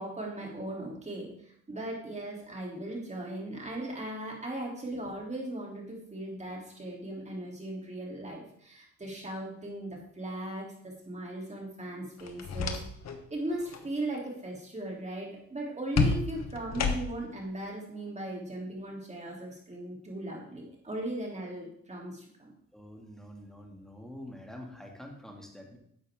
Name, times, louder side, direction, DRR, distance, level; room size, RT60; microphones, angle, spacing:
voice 1, 0.0-12.8 13.3-22.5, right 1 dB, 25° right, -1 dB, 3.3 m, -38 dB
sound 1, 12.2-13.2 13.5-13.9 16.0-17.4, left 4 dB, 60° left, 1.3 m, -30 dB
voice 2, 22.7-25.8, left 1 dB, ahead, 1 dB, 2.4 m, -46 dB
10.5 x 7.4 x 3.8 m, 0.69 s
cardioid pair, 90°, 30 cm